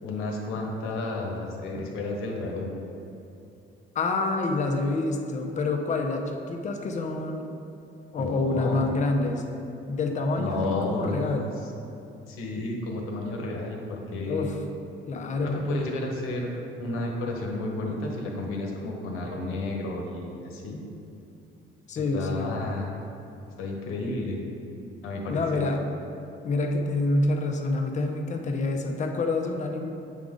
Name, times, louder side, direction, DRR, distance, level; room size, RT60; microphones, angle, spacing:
voice 1, 0.0-2.7 8.1-8.9 10.3-11.7 12.3-14.5 15.4-16.5 16.8-20.8 22.1-23.1 23.6-24.4 25.0-25.7, left 2 dB, 80° left, 0 dB, 1.1 m, -32 dB
voice 2, 3.9-7.5 8.1-9.5 9.9-11.5 14.3-14.5 15.1-15.6 21.9-22.5 25.3-25.8 26.4-29.9, left 2 dB, 35° left, 3 dB, 0.6 m, -27 dB
8.2 x 3.8 x 3.7 m, 2.7 s
cardioid pair, 120°, 21 cm